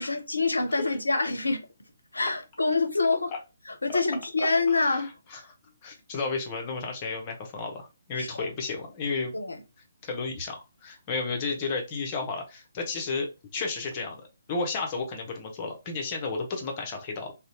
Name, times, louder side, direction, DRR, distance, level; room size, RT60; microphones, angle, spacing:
voice 1, 0.0-1.7 2.1-3.3 3.7-5.1 8.2-8.5 9.3-9.6, left 3 dB, 80° left, 0.5 m, -26 dB
voice 2, 4.7-5.4 5.8-9.3 10.0-13.3 13.5-14.2 14.5-17.3, left 4 dB, 30° left, 0.7 m, -32 dB
2.7 x 2.1 x 2.6 m
figure-of-eight pair, 140°, 0 cm